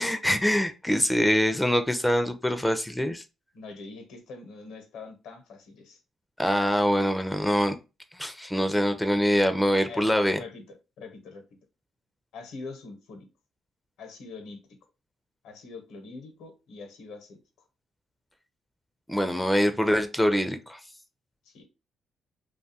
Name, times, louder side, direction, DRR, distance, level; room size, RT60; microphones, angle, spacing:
voice 1, 0.0-3.2 6.4-7.8 8.1-10.4 19.1-20.8, equal, 5° left, 8 dB, 0.4 m, -24 dB
voice 2, 3.5-6.0 9.9-11.4 12.3-13.3 14.0-14.6 15.4-17.4 21.4-21.6, left 3 dB, 85° left, 6 dB, 0.8 m, -43 dB
2.5 x 2.2 x 2.7 m, 0.29 s
cardioid pair, 90°, 0 cm